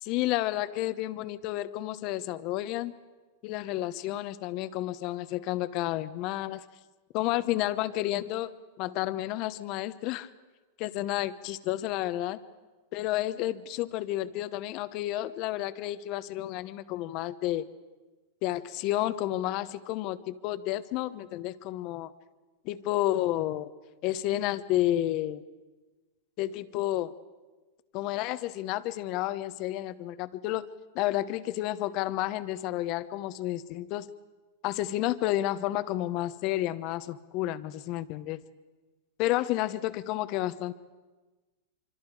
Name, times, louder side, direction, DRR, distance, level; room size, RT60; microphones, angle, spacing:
voice 1, 0.0-2.9 3.4-6.6 7.1-10.3 10.8-12.4 12.9-17.7 18.4-22.1 22.6-23.7 24.0-25.4 26.4-27.1 27.9-30.7 30.9-34.1 34.6-38.4 39.2-40.7, left 15 dB, 50° left, 14 dB, 1.0 m, -31 dB
25.5 x 25.5 x 4.9 m, 1.2 s
hypercardioid pair, 120°, 0 cm